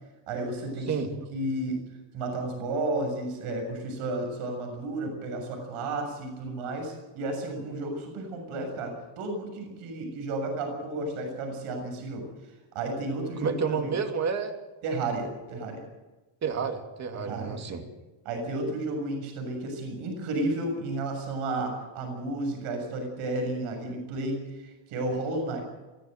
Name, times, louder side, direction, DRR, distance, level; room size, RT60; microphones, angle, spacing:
voice 1, 0.3-1.1 1.3-1.8 2.1-14.0 14.8-15.8 17.1-17.8 18.3-25.6, right 2 dB, 75° right, 4 dB, 7.1 m, -32 dB
voice 2, 13.4-14.6 16.4-17.8, right 6 dB, 30° right, 5 dB, 2.8 m, -30 dB
23.0 x 16.0 x 7.9 m, 1.1 s
cardioid pair, 155°, 50 cm